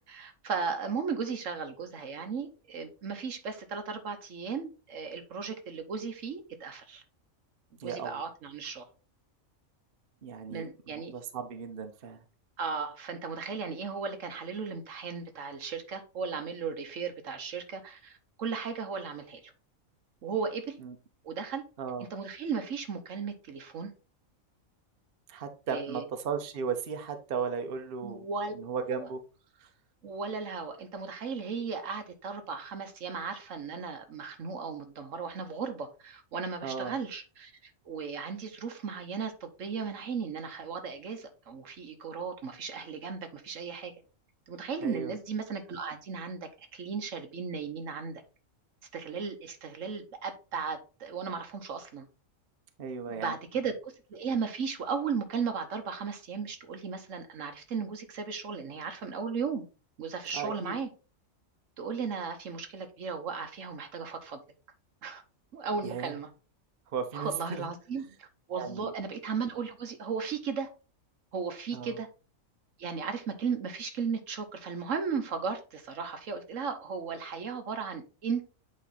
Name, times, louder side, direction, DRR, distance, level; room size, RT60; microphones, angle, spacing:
voice 1, 0.1-7.0 7.8-8.9 10.5-11.1 12.6-19.5 20.2-20.8 21.2-21.6 22.1-23.9 25.7-26.0 28.0-28.5 28.9-29.1 30.0-43.9 44.5-48.2 48.9-52.1 53.1-59.7 60.0-60.9 61.8-64.4 65.0-65.2 65.5-66.3 67.1-70.7 71.3-72.1 72.8-78.5, right 5 dB, 70° right, 7 dB, 1.3 m, -36 dB
voice 2, 7.8-8.2 10.2-10.7 10.9-12.2 20.8-20.9 21.8-22.1 25.3-28.3 28.5-29.2 29.6-29.7 36.6-37.0 44.8-45.1 52.8-53.3 60.3-60.8 65.8-66.1 66.9-67.7 68.6-68.9 71.7-72.0, right 6 dB, 50° right, 6 dB, 1.0 m, -36 dB
8.5 x 3.1 x 4.0 m, 0.33 s
omnidirectional pair, 1.4 m